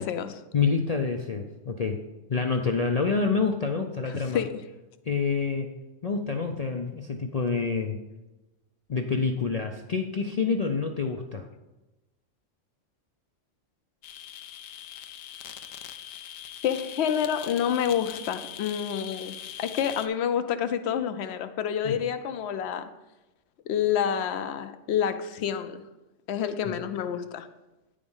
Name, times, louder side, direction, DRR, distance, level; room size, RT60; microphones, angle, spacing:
voice 1, 0.0-0.4 4.1-4.6 16.6-22.9 23.7-25.8 26.3-27.5, left 8 dB, 65° left, 10 dB, 0.8 m, -28 dB
voice 2, 0.5-2.0 2.3-4.4 5.1-5.7 6.0-8.0 8.9-11.5 21.8-22.0 26.7-26.8, left 5 dB, 50° left, 3 dB, 0.5 m, -27 dB
sound 1, 14.0-20.1, left 10 dB, 90° left, 1.0 m, -41 dB
9.7 x 5.0 x 5.4 m, 1.0 s
omnidirectional pair, 1.3 m